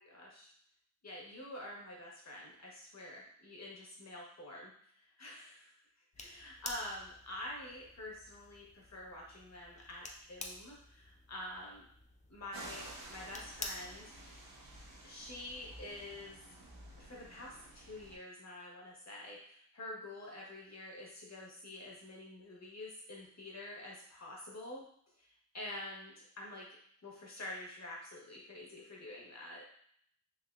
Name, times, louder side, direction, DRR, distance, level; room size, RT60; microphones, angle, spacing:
voice 1, 0.0-0.5 1.0-4.7 5.0-5.7 6.2-11.8 12.3-14.4 15.0-16.4 17.0-24.8 25.2-26.7 27.0-29.7, left 1 dB, 50° left, -3 dB, 1.1 m, -47 dB
sound 1, 6.1-14.2, left 2 dB, 25° left, 0.3 m, -50 dB
sound 2, 12.5-18.2, right 1 dB, 90° right, 0.7 m, -52 dB
3.5 x 2.9 x 2.4 m, 0.65 s
wide cardioid pair, 115°, 34 cm